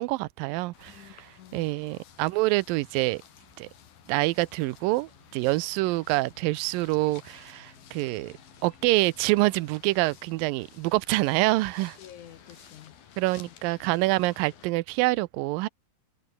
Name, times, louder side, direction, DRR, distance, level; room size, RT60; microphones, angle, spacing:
voice 1, 0.0-0.9 1.5-3.2 3.6-3.7 4.1-8.3 8.6-12.0 13.2-15.7, right 21 dB, 80° right, 2.4 m, -26 dB
sound 1, 0.7-14.7, left 8 dB, 90° left, 4.5 m, -54 dB
voice 2, 0.9-1.7 12.0-13.0 13.5-13.6, left 11 dB, 65° left, 2.3 m, -50 dB
sound 2, 4.1-9.3, right 2 dB, 25° right, 7.8 m, -66 dB
omnidirectional pair, 4.1 m